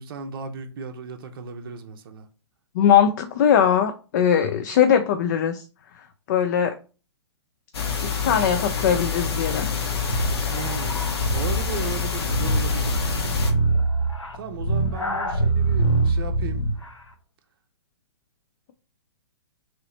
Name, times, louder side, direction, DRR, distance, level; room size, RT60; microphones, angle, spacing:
voice 1, 0.0-2.3 10.5-13.0 14.3-16.6, right 6 dB, 50° right, 0.6 m, -35 dB
voice 2, 2.8-5.6 6.3-6.7 8.2-9.7, left 8 dB, 40° left, 0.4 m, -20 dB
sound 1, 7.7-13.5, left 6 dB, 60° left, 0.8 m, -27 dB
sound 2, 10.0-16.9, right 2 dB, 85° left, 0.7 m, -24 dB
3.1 x 2.8 x 3.1 m
figure-of-eight pair, 115°, 15 cm